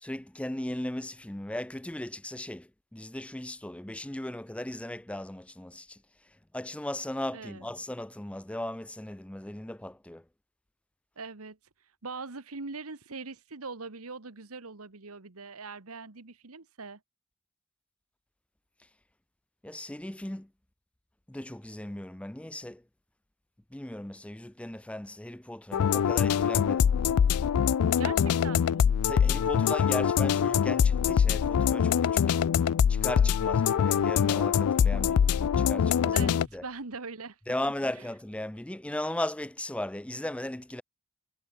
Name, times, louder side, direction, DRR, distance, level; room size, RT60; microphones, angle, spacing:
voice 1, 0.0-6.0 6.5-10.2 19.6-20.5 21.3-22.8 23.7-26.9 29.1-32.4 32.9-36.6 37.5-40.8, left 1 dB, 5° left, 0.4 m, -37 dB
voice 2, 7.3-7.7 11.2-11.6 12.0-17.0 28.0-28.9 36.1-37.4, right 4 dB, 80° right, 1.5 m, -41 dB
sound 1, 25.7-36.5, left 8 dB, 90° left, 0.4 m, -24 dB
head